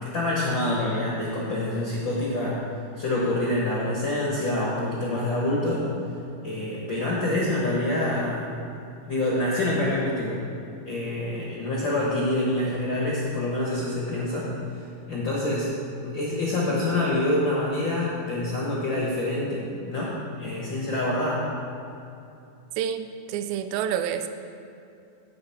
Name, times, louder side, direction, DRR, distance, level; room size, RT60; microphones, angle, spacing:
voice 1, 0.0-2.6 3.0-5.9 6.4-8.6 9.1-10.4 10.9-14.5 15.1-15.7 16.0-21.5, left 1 dB, 60° left, -5 dB, 1.2 m, -26 dB
voice 2, 22.8-24.3, right 9 dB, 85° right, 9 dB, 2.3 m, -28 dB
8.7 x 8.0 x 5.7 m, 2.7 s
omnidirectional pair, 4.2 m